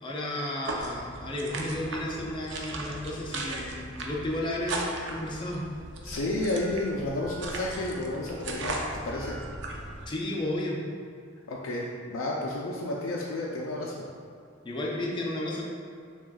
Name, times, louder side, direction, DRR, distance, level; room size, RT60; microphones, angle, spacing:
voice 1, 0.0-5.7 10.1-10.8 14.6-15.6, left 1 dB, 25° left, -2 dB, 0.4 m, -33 dB
sound 1, 0.6-10.0, right 2 dB, 60° right, 0.4 m, -37 dB
voice 2, 6.0-9.4 11.5-14.0, left 2 dB, 85° left, -4 dB, 0.4 m, -31 dB
5.9 x 2.3 x 2.3 m, 2.3 s
head